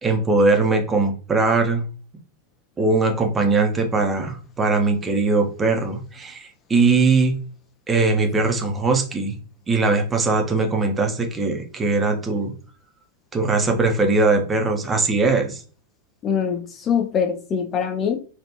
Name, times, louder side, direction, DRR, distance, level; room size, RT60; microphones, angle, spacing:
voice 1, 0.0-1.8 2.8-7.4 7.9-9.4 9.7-12.5 13.3-15.6, right 3 dB, 15° right, 3 dB, 0.7 m, -20 dB
voice 2, 16.2-18.2, left 7 dB, 30° left, 5 dB, 0.4 m, -23 dB
3.4 x 2.4 x 2.8 m, 0.38 s
figure-of-eight pair, 90°, 0 cm